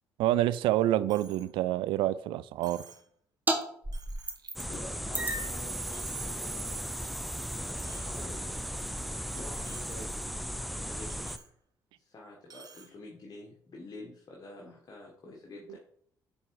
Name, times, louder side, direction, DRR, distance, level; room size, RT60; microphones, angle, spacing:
voice 1, 0.2-2.9 15.7-15.8, right 14 dB, 80° right, 0.4 m, -27 dB
Coin (dropping), 1.1-1.5 1.9-2.0 2.6-3.1 3.6-3.7 3.9-4.5 4.9-5.5 5.8-6.5 6.8-7.1 7.8-9.0 9.4-9.9 10.3-10.4 11.1-11.5 12.5-12.9, right 5 dB, 50° right, 1.3 m, -54 dB
sound 1, 3.5-3.6 3.8-4.8 5.1-10.2, right 2 dB, 20° right, 1.3 m, -37 dB
sound 2, 4.6-11.4, equal, ahead, 0.5 m, -37 dB
voice 2, 4.7-6.9 7.5-8.9 9.3-10.3 10.5-11.3 12.0-15.8, left 2 dB, 50° left, 1.7 m, -48 dB
7.2 x 3.7 x 4.9 m
supercardioid pair, 65°, 9 cm